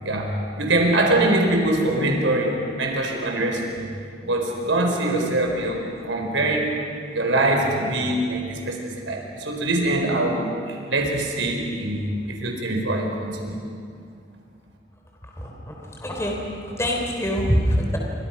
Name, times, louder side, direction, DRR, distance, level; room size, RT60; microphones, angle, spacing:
voice 1, 0.0-2.5 2.8-3.9 4.2-6.8 7.1-13.6, right 1 dB, 90° right, 1 dB, 4.7 m, -23 dB
voice 2, 15.4-18.0, equal, 15° left, 0 dB, 3.4 m, -25 dB
29.5 x 25.0 x 6.0 m, 2.2 s
head